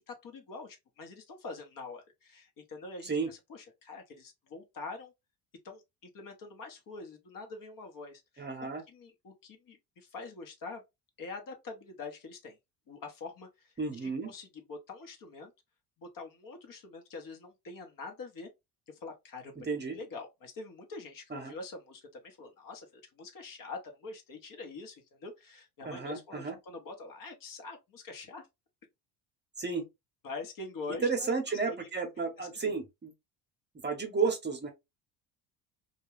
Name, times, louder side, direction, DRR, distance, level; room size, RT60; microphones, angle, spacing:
voice 1, 0.1-5.1 5.6-10.8 11.2-12.6 12.9-13.7 14.0-15.5 16.0-18.5 18.9-19.7 19.9-28.5 30.2-31.8 32.4-32.7, left 3 dB, 50° left, 1.0 m, -45 dB
voice 2, 8.4-8.8 13.8-14.3 19.6-20.0 21.3-21.5 25.8-26.6 29.6-29.9 31.0-33.1 33.8-34.7, right 4 dB, 25° right, 0.8 m, -32 dB
2.4 x 2.2 x 3.1 m
supercardioid pair, 80°, 44 cm